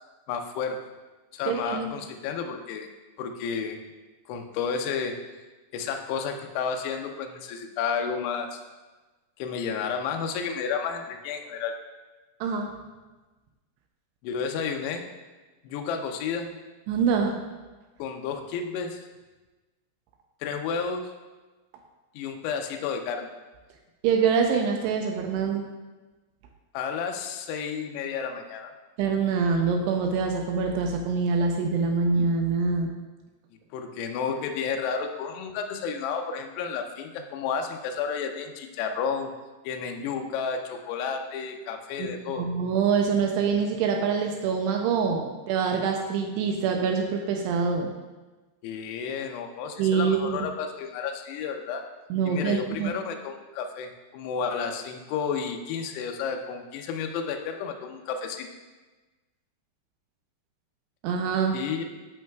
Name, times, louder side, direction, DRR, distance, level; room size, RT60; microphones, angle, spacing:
voice 1, 0.3-0.8 1.3-2.9 3.2-3.8 4.3-5.2 5.7-8.6 9.4-11.7 14.2-15.0 15.6-16.5 18.0-19.1 20.4-21.1 22.2-23.3 26.7-28.7 33.7-39.3 39.6-42.5 48.6-51.8 52.3-58.5 61.5-61.8, left 6 dB, 80° left, 4 dB, 2.5 m, -31 dB
voice 2, 1.5-1.9 12.4-12.7 16.9-17.4 24.0-25.7 29.0-32.9 42.0-42.1 42.3-47.9 49.8-50.4 52.1-52.9 61.0-61.6, right 5 dB, 90° right, 3 dB, 2.4 m, -25 dB
10.5 x 5.5 x 2.3 m, 1.2 s
omnidirectional pair, 5.3 m